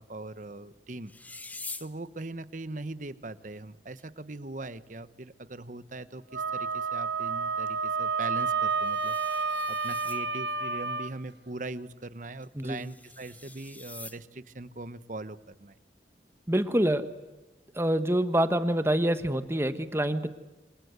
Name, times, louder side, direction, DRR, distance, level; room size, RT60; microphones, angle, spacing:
voice 1, 0.0-1.4 1.8-15.8, right 2 dB, 45° right, 13 dB, 1.1 m, -41 dB
sound 1, 1.1-1.9 4.0-4.1 4.3-4.4 5.0-5.1 8.4-10.2 12.4-14.2 16.5-16.9, left 3 dB, 10° left, 0.9 m, -45 dB
Wind instrument woodwind instrument, 6.3-11.1, right 4 dB, 75° right, 1.3 m, -30 dB
voice 2, 16.5-17.1 17.7-20.3, right 1 dB, 15° right, 10 dB, 1.2 m, -26 dB
27.5 x 26.0 x 8.1 m, 1.1 s
head